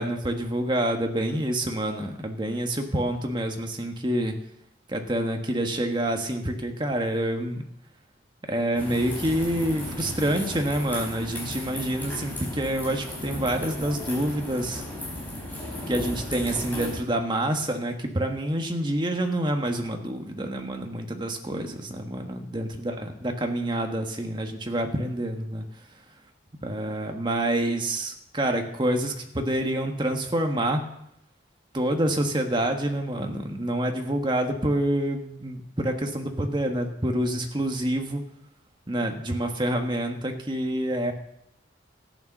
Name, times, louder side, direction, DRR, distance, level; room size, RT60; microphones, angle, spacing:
voice 1, 0.0-4.4 4.9-7.6 8.5-14.8 15.9-25.6 26.6-30.8 31.7-38.2 38.9-41.1, right 1 dB, 25° right, 4 dB, 1.5 m, -27 dB
sound 1, 8.7-17.0, left 1 dB, 10° left, 4.7 m, -35 dB
14.0 x 8.9 x 6.6 m, 0.79 s
head